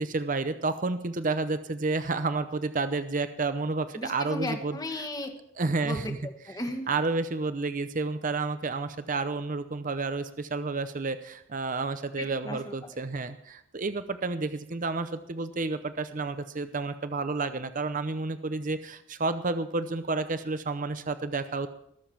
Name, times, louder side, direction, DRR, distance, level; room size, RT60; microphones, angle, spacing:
voice 1, 0.0-2.4 2.7-4.8 5.6-6.0 6.9-10.2 10.5-11.2 11.5-13.3 13.7-18.8 19.2-21.7, right 3 dB, 40° right, 11 dB, 0.7 m, -30 dB
voice 2, 3.9-5.3 5.8-6.9 12.2-12.7, left 1 dB, 20° left, 5 dB, 1.5 m, -36 dB
20.0 x 7.2 x 5.9 m, 0.74 s
head